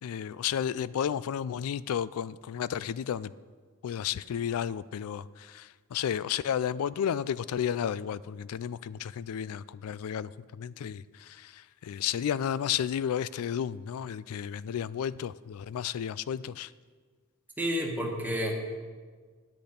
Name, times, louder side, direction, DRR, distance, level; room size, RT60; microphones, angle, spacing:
voice 1, 0.0-3.3 3.8-16.7, left 9 dB, 70° left, 0.3 m, -32 dB
voice 2, 17.6-18.5, equal, 10° right, 1.4 m, -30 dB
10.5 x 8.4 x 5.2 m
head